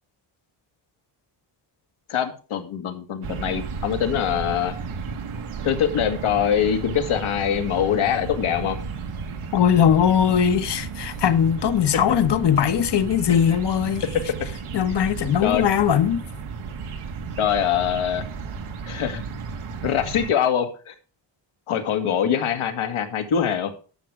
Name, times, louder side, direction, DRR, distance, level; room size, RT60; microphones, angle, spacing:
voice 1, 2.1-4.7 5.6-8.8 15.4-15.6 17.4-18.2 18.9-19.2 19.8-20.9 21.7-23.7, left 9 dB, 80° left, 1.9 m, -23 dB
sound 1, 3.2-20.3, right 5 dB, 85° right, 1.7 m, -33 dB
voice 2, 9.5-14.0 14.7-16.2, left 8 dB, 55° left, 1.1 m, -20 dB
12.0 x 6.7 x 4.9 m
cardioid pair, 120°, 49 cm